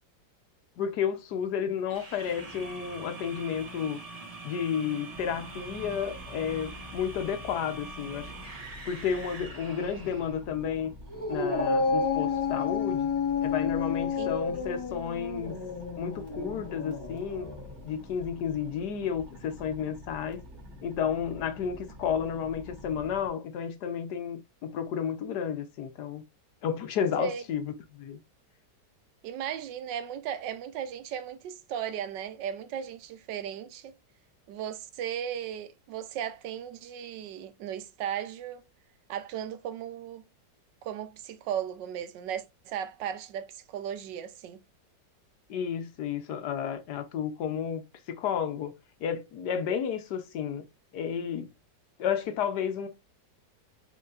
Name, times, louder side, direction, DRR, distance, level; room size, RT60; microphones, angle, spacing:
voice 1, 0.8-4.0 4.4-8.3 8.8-10.9 11.3-13.1 13.4-15.6 16.0-17.5 17.8-20.4 20.8-26.2 26.6-28.2 45.5-47.8 48.1-48.8 49.0-50.6 50.9-51.5 52.0-52.9, left 7 dB, 70° left, 1.3 m, -32 dB
sound 1, 1.9-10.4, right 3 dB, 25° right, 0.9 m, -44 dB
sound 2, 5.1-23.3, equal, 45° right, 1.6 m, -48 dB
Dog, 11.1-17.7, left 5 dB, 10° left, 1.2 m, -30 dB
voice 2, 14.1-14.7 27.2-27.4 29.2-34.0 34.5-38.7 39.1-40.2 40.8-44.6, right 9 dB, 85° right, 1.3 m, -36 dB
5.4 x 3.8 x 2.4 m
omnidirectional pair, 1.9 m